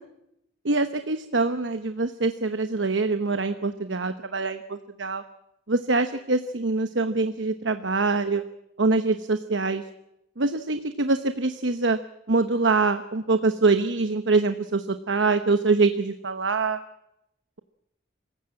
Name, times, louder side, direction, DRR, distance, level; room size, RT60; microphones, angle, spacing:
voice 1, 0.6-5.2 5.7-8.4 8.8-9.8 10.4-12.0 12.3-16.8, right 3 dB, 75° right, 9 dB, 1.0 m, -24 dB
26.5 x 16.0 x 7.5 m, 0.82 s
head